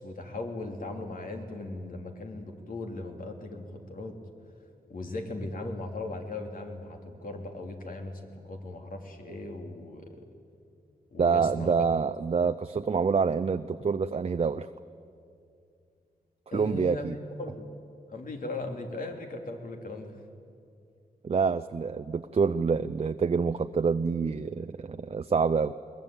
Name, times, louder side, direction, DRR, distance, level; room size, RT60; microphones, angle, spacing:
voice 1, 0.0-4.2 4.9-10.2 11.1-11.9 16.5-17.1 17.4-17.7 18.1-20.2, left 2 dB, 60° left, 3 dB, 3.0 m, -38 dB
voice 2, 11.2-14.7 16.5-17.2 21.2-25.7, right 5 dB, 40° right, 11 dB, 0.6 m, -27 dB
22.0 x 20.0 x 8.9 m, 2.4 s
wide cardioid pair, 95°, 16 cm